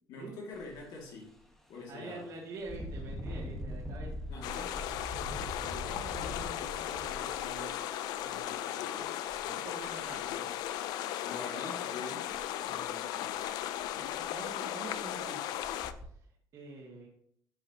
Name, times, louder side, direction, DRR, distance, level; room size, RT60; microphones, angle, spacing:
voice 1, 0.1-1.4 1.7-2.3 4.3-4.8 8.7-9.2 11.2-12.4, left 3 dB, 70° left, 2.2 m, -44 dB
Engine, 0.5-0.7 1.2-1.4 2.6-8.4 9.3-9.4 9.8-10.5 12.3-12.5 12.8-12.9 13.4-13.5 13.8-14.3 14.9-15.0 15.6-16.0, left 1 dB, 5° left, 1.3 m, -42 dB
voice 2, 1.9-4.1 5.5-7.9 8.2-8.8 9.4-10.6 11.2-11.5 12.7-13.3 13.9-15.6 16.1-16.2 16.5-17.1, right 3 dB, 55° right, 2.3 m, -47 dB
sound 1, 4.4-15.9, left 12 dB, 90° left, 0.5 m, -36 dB
10.5 x 7.0 x 2.8 m
cardioid pair, 135°, 7 cm